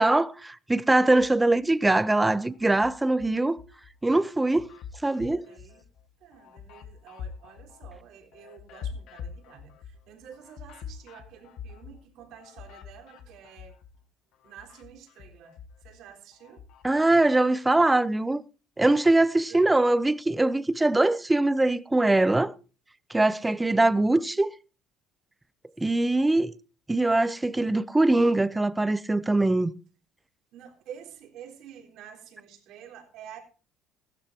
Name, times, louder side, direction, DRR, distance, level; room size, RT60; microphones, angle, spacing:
voice 1, 0.0-3.6 4.0-4.7 5.0-5.4 16.8-18.4 18.8-22.5 23.1-24.5 25.8-26.5 26.9-29.7, right 2 dB, 10° right, 0.6 m, -22 dB
sound 1, 1.2-1.9 2.3-3.9 4.3-14.0 14.3-16.9, left 7 dB, 60° left, 1.6 m, -45 dB
voice 2, 5.5-5.8 6.2-13.8 14.4-16.7 19.3-19.6 25.8-26.1 30.5-33.4, right 8 dB, 65° right, 3.8 m, -49 dB
16.0 x 13.0 x 2.9 m
cardioid pair, 130°, 0 cm